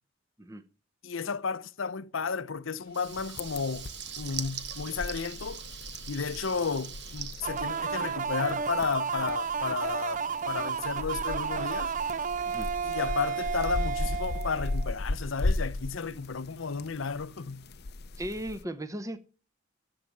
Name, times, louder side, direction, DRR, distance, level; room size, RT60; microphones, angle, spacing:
voice 1, 1.0-3.9 4.2-5.6 6.1-11.9 12.8-17.6, left 5 dB, 85° left, 0.8 m, -33 dB
Water tap faucet / Liquid, 2.9-8.4, right 8 dB, 60° right, 1.3 m, -42 dB
sound 1, 3.0-18.6, left 2 dB, 55° left, 0.6 m, -37 dB
sound 2, 7.4-15.0, right 6 dB, 40° right, 0.5 m, -32 dB
voice 2, 18.2-19.2, right 1 dB, 15° right, 0.8 m, -36 dB
14.5 x 6.7 x 7.3 m
head